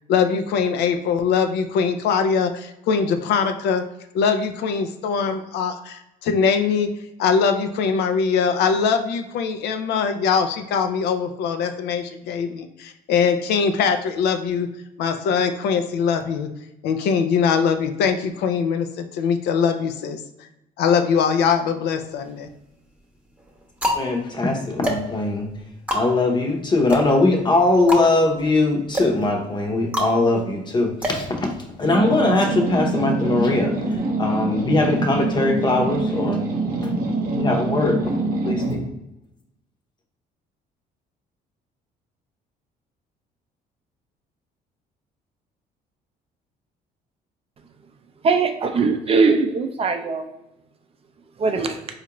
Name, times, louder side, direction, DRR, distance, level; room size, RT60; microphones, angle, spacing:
voice 1, 0.1-3.9 4.1-6.9 7.2-14.7 15.0-16.5 16.8-20.2 20.8-22.5, left 6 dB, 75° left, 7 dB, 0.4 m, -22 dB
sound 1, 21.9-22.6 23.3-32.0, equal, 10° right, 0.8 m, -29 dB
voice 2, 23.9-25.5 25.9-31.5 31.8-36.4 36.8-36.9 37.3-38.0 38.4-38.8, left 2 dB, 25° left, 2 dB, 0.8 m, -21 dB
sound 2, 31.8-38.9, right 2 dB, 55° right, 0.8 m, -24 dB
voice 3, 48.2-50.2 51.4-51.8, right 4 dB, 35° right, 6 dB, 0.4 m, -20 dB
4.2 x 2.5 x 2.9 m, 0.88 s
cardioid pair, 110°, 17 cm